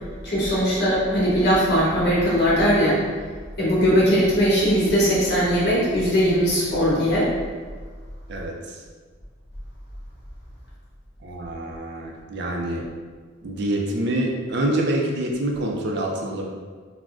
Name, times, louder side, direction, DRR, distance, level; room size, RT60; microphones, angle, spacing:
voice 1, 0.2-3.0 3.6-7.3, equal, 55° left, -7 dB, 1.0 m, -20 dB
voice 2, 8.3-8.8 11.2-12.9 13.4-16.5, right 1 dB, 55° right, 0 dB, 0.4 m, -26 dB
3.5 x 2.1 x 2.5 m, 1.5 s
head